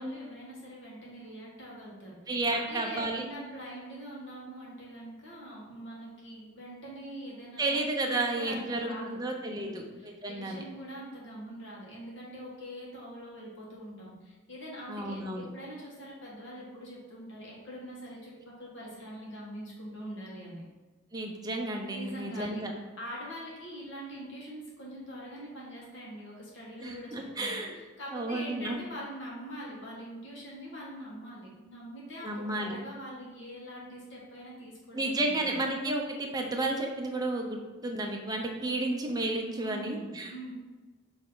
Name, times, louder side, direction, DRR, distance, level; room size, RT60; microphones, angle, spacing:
voice 1, 0.0-7.8 8.1-9.2 9.5-20.6 21.9-22.7 23.0-35.6 39.6-40.5, equal, 60° left, -4 dB, 1.9 m, -43 dB
voice 2, 2.3-3.3 7.6-10.6 14.9-15.5 21.1-22.7 26.8-27.7 28.1-28.8 32.2-32.8 34.9-40.5, right 2 dB, 20° right, 1 dB, 0.7 m, -32 dB
7.0 x 3.5 x 3.9 m, 1.3 s
head